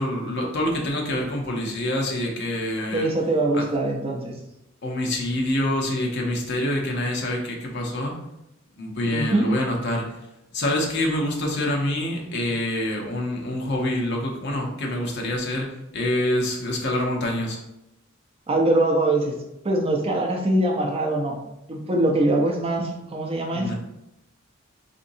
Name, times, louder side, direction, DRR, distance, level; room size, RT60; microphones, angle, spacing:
voice 1, 0.0-3.1 3.5-3.6 4.8-8.1 8.8-10.1 10.5-15.7 15.9-17.6 23.5-23.7, left 1 dB, 55° left, 0 dB, 0.7 m, -26 dB
voice 2, 2.9-4.3 9.1-9.5 18.5-19.4 19.6-21.4 21.7-23.7, right 1 dB, 30° right, 1 dB, 0.5 m, -23 dB
3.8 x 2.6 x 2.6 m, 0.87 s
head